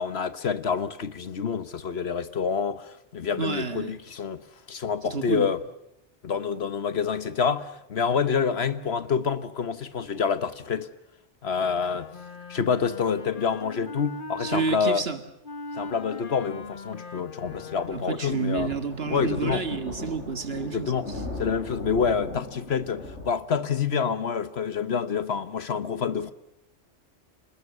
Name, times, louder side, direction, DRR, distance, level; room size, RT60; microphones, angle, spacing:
voice 1, 0.0-4.4 4.7-5.6 6.2-10.9 11.4-12.1 12.5-15.0 15.7-18.7 19.1-19.6 20.6-21.1 21.4-26.3, left 6 dB, 65° left, 1.3 m, -27 dB
voice 2, 3.4-4.0 5.0-5.5 14.4-15.2 17.9-21.0, right 5 dB, 60° right, 2.0 m, -30 dB
Wind instrument woodwind instrument, 11.5-14.8 15.4-18.2, left 3 dB, 45° left, 1.5 m, -40 dB
sound 1, 17.4-23.3, left 1 dB, 80° left, 6.0 m, -38 dB
28.0 x 20.0 x 7.0 m
omnidirectional pair, 1.2 m